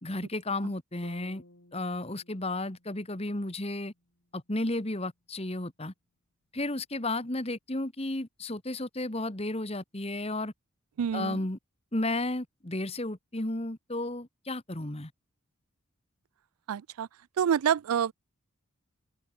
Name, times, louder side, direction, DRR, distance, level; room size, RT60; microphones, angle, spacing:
voice 1, 0.0-1.4 1.7-3.9 4.3-5.9 6.5-10.5 11.1-11.6 11.9-15.1, left 2 dB, 25° left, 1.6 m, -33 dB
sound 1, 1.0-5.1, left 1 dB, 55° left, 3.0 m, -57 dB
voice 2, 11.0-11.4 16.7-17.1 17.4-18.1, right 8 dB, 80° right, 0.4 m, -27 dB
head